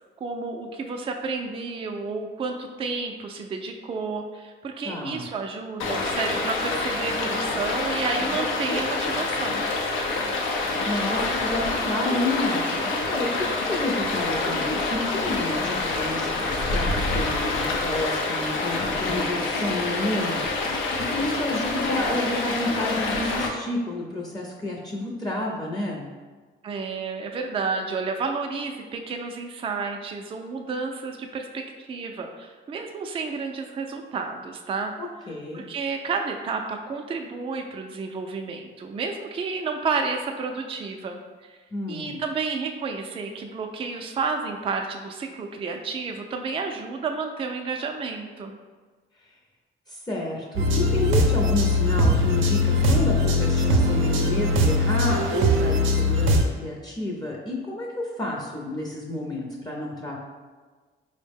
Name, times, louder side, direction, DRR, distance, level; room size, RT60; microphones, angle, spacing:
voice 1, 0.2-9.7 26.6-31.6 31.9-34.9 35.5-41.6 41.9-48.6, right 4 dB, 30° right, 3 dB, 0.3 m, -31 dB
voice 2, 4.8-5.3 10.8-20.4 21.0-26.0 35.0-35.6 41.7-42.2 49.9-60.2, left 1 dB, 20° left, -3 dB, 0.6 m, -30 dB
Stream, 5.8-23.5, left 3 dB, 85° left, 0.6 m, -27 dB
sound 1, 50.6-56.4, left 1 dB, 80° right, 0.5 m, -21 dB
4.4 x 2.1 x 3.4 m, 1.4 s
cardioid pair, 90°, 20 cm